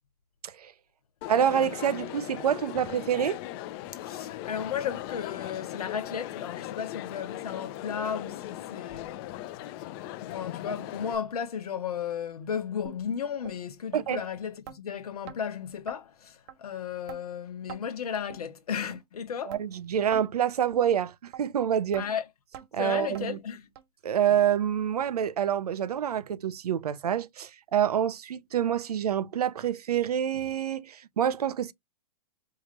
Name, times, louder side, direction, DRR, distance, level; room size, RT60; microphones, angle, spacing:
Crowd, 1.2-11.1, left 14 dB, 40° left, 0.5 m, -39 dB
voice 1, 1.3-3.4 13.9-14.2 19.5-22.1 22.7-23.4 24.0-31.7, right 9 dB, 85° right, 0.6 m, -27 dB
voice 2, 4.0-9.2 10.2-19.6 22.0-22.3 22.8-23.7, left 7 dB, 80° left, 0.9 m, -34 dB
sound 1, 12.8-13.0 13.4-13.6 14.1-14.2 14.7-14.8 15.3-15.4 15.9-16.0 16.5-16.6 17.1-17.2 17.7-17.8 18.3-18.4 18.9-19.0 19.5-19.6 20.1-20.3 20.7-20.9 21.3-21.4 21.9-22.1 22.5-22.7 23.1-23.3 23.7-23.8 24.4-24.5 25.0-25.1 25.6-25.7, right 11 dB, 45° right, 0.8 m, -43 dB
4.8 x 2.5 x 3.0 m
hypercardioid pair, 130°, 19 cm